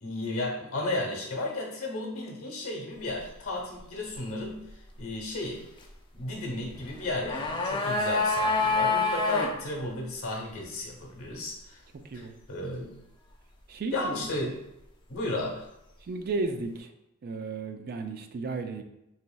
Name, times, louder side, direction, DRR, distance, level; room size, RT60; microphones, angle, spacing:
voice 1, 0.0-4.7 5.0-5.6 6.1-11.8 12.1-12.9 13.9-14.5 15.1-15.7, left 2 dB, 70° left, 0 dB, 1.0 m, -34 dB
sound 1, 6.9-9.5 9.8-9.9, left 3 dB, 20° left, 0.4 m, -26 dB
voice 2, 11.9-12.4 13.7-14.2 14.4-14.5 16.0-16.9 17.2-18.8, right 3 dB, 45° right, 7 dB, 0.3 m, -34 dB
4.0 x 3.0 x 2.2 m, 0.87 s
head